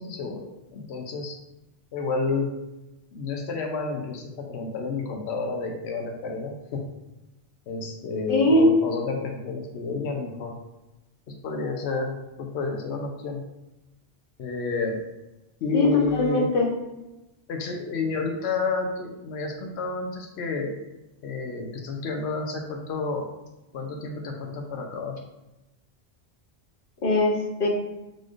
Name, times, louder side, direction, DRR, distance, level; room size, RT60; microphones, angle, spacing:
voice 1, 0.0-1.4 1.9-2.5 3.1-6.8 7.7-10.5 11.4-13.4 14.4-15.0 15.6-16.5 17.5-20.8 21.2-23.2 23.7-25.2, left 4 dB, 85° left, 2 dB, 0.9 m, -30 dB
voice 2, 8.3-8.7 15.7-16.7 27.0-27.7, left 2 dB, 60° left, 0 dB, 0.9 m, -21 dB
4.1 x 3.1 x 2.4 m, 0.97 s
omnidirectional pair, 1.1 m